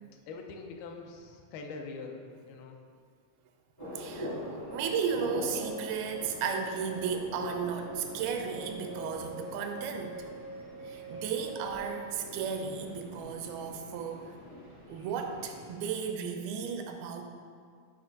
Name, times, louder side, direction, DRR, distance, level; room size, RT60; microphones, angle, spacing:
voice 1, 0.3-2.8 10.4-10.5, left 4 dB, 90° left, 3 dB, 2.5 m, -43 dB
sound 1, 3.8-15.7, equal, 30° left, 0.5 m, -44 dB
voice 2, 3.9-4.4 4.7-10.3 10.9-14.4 14.9-17.2, right 6 dB, 85° right, 5 dB, 2.5 m, -34 dB
sound 2, 4.7-13.4, right 2 dB, 75° left, 0.8 m, -44 dB
7.9 x 5.3 x 3.9 m, 2.1 s
omnidirectional pair, 4.3 m